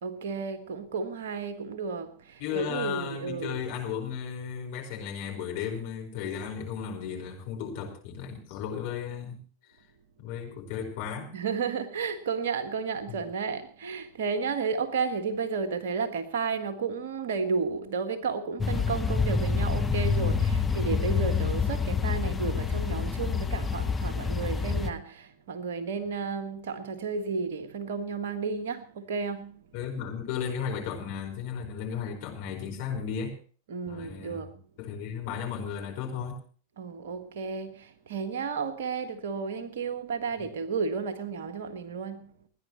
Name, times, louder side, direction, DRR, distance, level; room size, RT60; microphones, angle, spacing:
voice 1, 0.0-3.7 11.3-29.7 33.7-34.6 36.8-42.5, right 5 dB, 60° right, 1.5 m, -32 dB
voice 2, 2.4-9.4 10.2-11.3 21.2-21.5 29.7-33.3 33.9-34.5 34.8-36.4, left 7 dB, 50° left, 5.0 m, -35 dB
sound 1, 18.6-24.9, left 5 dB, 10° left, 1.0 m, -27 dB
29.5 x 10.5 x 3.1 m
figure-of-eight pair, 90°, 0 cm